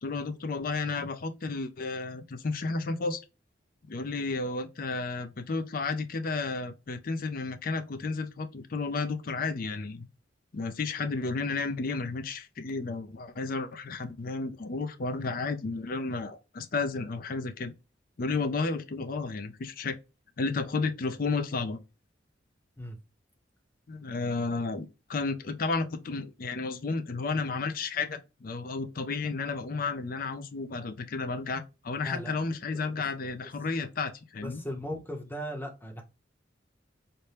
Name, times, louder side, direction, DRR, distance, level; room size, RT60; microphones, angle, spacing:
voice 1, 0.0-3.2 3.9-10.1 10.5-17.7 18.2-20.0 20.4-21.8 23.9-34.6, left 4 dB, 50° left, 0.4 m, -32 dB
voice 2, 34.4-36.0, equal, 10° left, 0.7 m, -37 dB
4.1 x 2.1 x 3.2 m
head